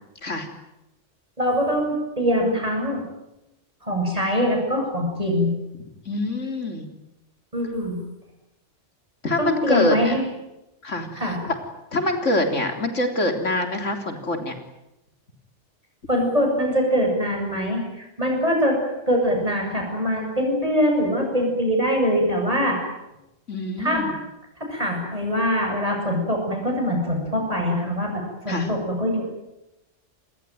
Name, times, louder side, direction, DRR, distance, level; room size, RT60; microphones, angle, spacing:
voice 1, 1.4-3.0 3.8-5.5 7.5-8.0 9.4-10.2 11.2-11.4 16.1-18.8 19.1-22.8 23.8-24.0 24.6-29.2, equal, 30° right, 0 dB, 8.2 m, -23 dB
voice 2, 6.1-6.9 9.2-10.1 10.8-11.6 11.9-14.6 23.5-24.1 28.5-28.8, left 2 dB, 75° left, 5 dB, 4.0 m, -25 dB
27.5 x 20.5 x 9.4 m, 0.93 s
omnidirectional pair, 1.3 m